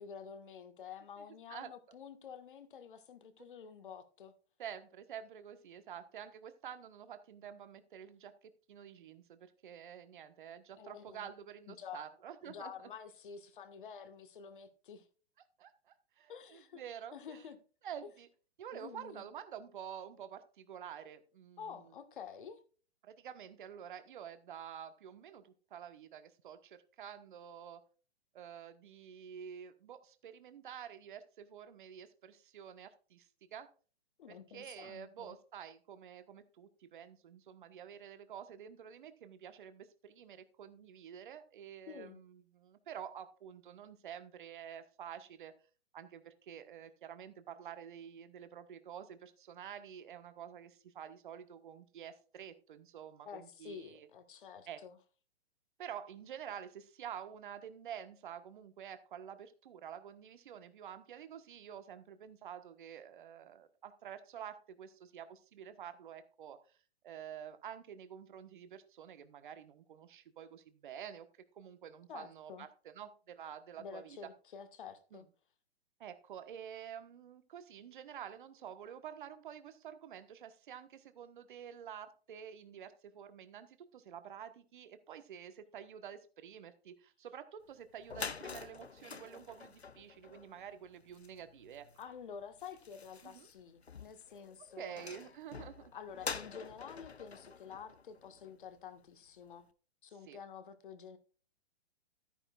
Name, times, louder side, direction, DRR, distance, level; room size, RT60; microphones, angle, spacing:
voice 1, 0.0-4.3 10.8-11.3 11.7-12.0 12.4-15.1 16.3-16.8 17.1-17.6 18.7-19.2 21.6-22.6 34.2-35.4 41.9-42.2 53.2-55.0 72.1-72.7 73.8-75.3 92.0-95.0 95.6-99.7 100.0-101.2, left 7 dB, 55° left, 1.6 m, -49 dB
voice 2, 1.2-1.7 4.6-12.9 15.6-17.4 17.8-18.3 18.6-21.9 23.0-27.8 28.3-33.7 34.3-45.5 45.9-54.1 54.7-54.8 55.8-66.8 67.0-71.3 71.5-72.7 72.9-74.2 75.1-75.2 76.0-91.9 93.2-93.5 94.8-95.9 100.2-100.4, right 9 dB, 50° right, 1.3 m, -49 dB
sound 1, 87.7-87.8 88.0-98.8, left 5 dB, 85° left, 0.8 m, -47 dB
13.0 x 9.9 x 2.4 m
figure-of-eight pair, 120°, 31 cm